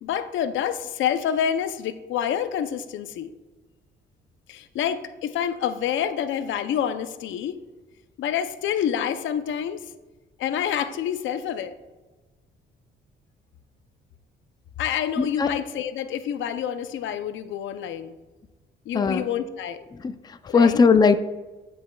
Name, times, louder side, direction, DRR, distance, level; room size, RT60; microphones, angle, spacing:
voice 1, 0.0-3.3 4.5-7.6 8.2-9.9 10.4-11.7 14.8-18.2 18.9-19.8 20.5-20.8, left 9 dB, 75° left, 11 dB, 0.5 m, -27 dB
voice 2, 15.2-15.5 18.9-19.2 20.0-21.2, left 5 dB, 20° left, 10 dB, 0.4 m, -19 dB
12.5 x 5.5 x 2.2 m, 1.2 s
cardioid pair, 90°, 20 cm